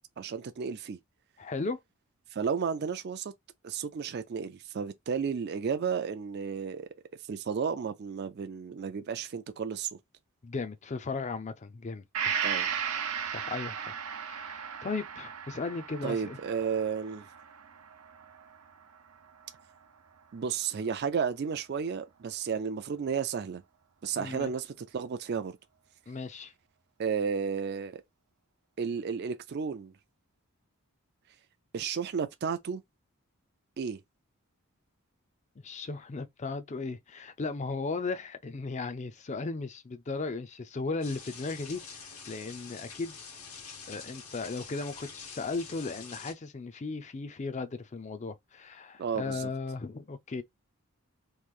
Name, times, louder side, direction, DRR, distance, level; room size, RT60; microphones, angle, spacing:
voice 1, 0.2-1.0 2.3-3.3 3.6-6.9 7.3-9.9 12.4-12.7 16.0-17.3 20.3-23.6 24.0-25.6 27.0-28.0 28.8-29.9 31.7-32.8 33.8-34.0 49.0-49.5, right 6 dB, 50° right, 0.4 m, -33 dB
voice 2, 1.4-1.8 10.4-12.4 13.3-16.4 24.2-24.5 26.1-26.5 35.6-43.2 43.9-50.4, left 3 dB, 35° left, 0.4 m, -36 dB
Gong, 12.1-19.8 20.2-20.3, right 7 dB, 85° right, 0.7 m, -36 dB
sound 1, 41.0-46.3, left 5 dB, 85° left, 1.4 m, -46 dB
3.1 x 2.5 x 3.6 m
head